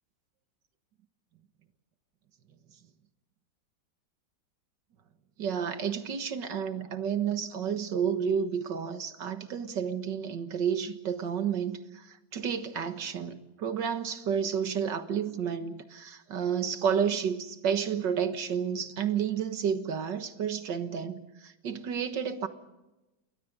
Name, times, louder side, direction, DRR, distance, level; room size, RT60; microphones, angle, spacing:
voice 1, 5.4-22.5, right 7 dB, 75° right, 2.1 m, -31 dB
29.5 x 21.5 x 5.2 m
omnidirectional pair, 2.0 m